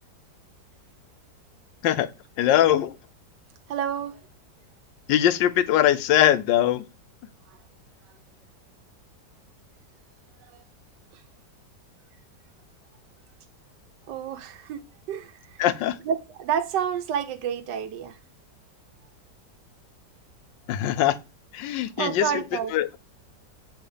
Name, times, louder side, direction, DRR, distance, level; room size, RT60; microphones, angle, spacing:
voice 1, 2.4-3.0 5.1-6.8 15.6-16.0 20.7-21.2 21.5-22.4 22.7-23.0, left 12 dB, 90° left, 1.3 m, -21 dB
voice 2, 3.7-4.2 7.5-7.6 10.4-10.6 11.1-11.2 14.1-14.8 15.1-15.6 16.0-18.2 22.0-22.7, right 8 dB, 75° right, 1.4 m, -29 dB
7.1 x 3.6 x 5.0 m
omnidirectional pair, 1.9 m